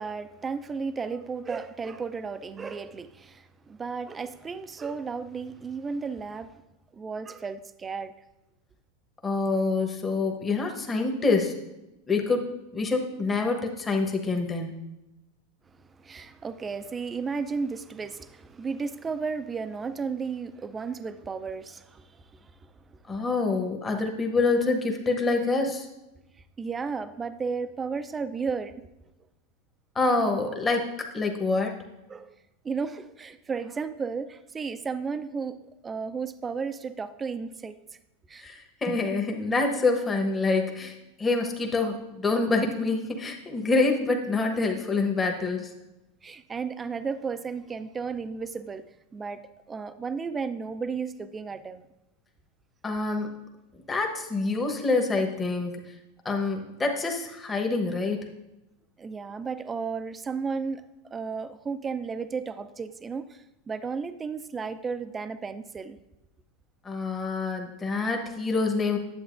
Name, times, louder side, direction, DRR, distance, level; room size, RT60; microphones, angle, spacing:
voice 1, 0.0-6.5 6.9-8.1 16.0-22.5 26.6-28.8 32.1-32.3 32.6-37.8 38.3-38.5 46.2-48.9 49.1-51.8 59.0-66.0, right 5 dB, 20° right, 0.4 m, -34 dB
voice 2, 9.2-11.6 12.1-12.5 12.7-14.9 23.1-25.9 29.9-31.8 38.4-45.7 52.8-53.3 53.9-55.8 56.2-58.2 66.8-69.0, left 3 dB, 20° left, 1.0 m, -26 dB
9.5 x 7.7 x 2.5 m
hypercardioid pair, 105°, 0 cm